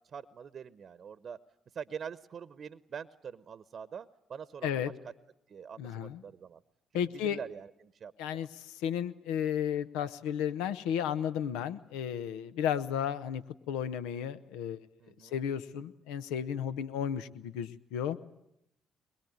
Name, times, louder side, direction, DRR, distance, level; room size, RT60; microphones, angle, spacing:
voice 1, 0.1-1.4 1.7-5.1 5.5-6.6 7.1-8.5 15.0-15.3, right 7 dB, 55° right, 15 dB, 0.9 m, -44 dB
voice 2, 5.8-6.2 6.9-7.4 8.2-8.5 8.8-13.4 13.7-14.8 15.3-18.2, left 9 dB, 80° left, 13 dB, 0.9 m, -33 dB
22.5 x 22.5 x 9.4 m, 0.80 s
hypercardioid pair, 50°, 0 cm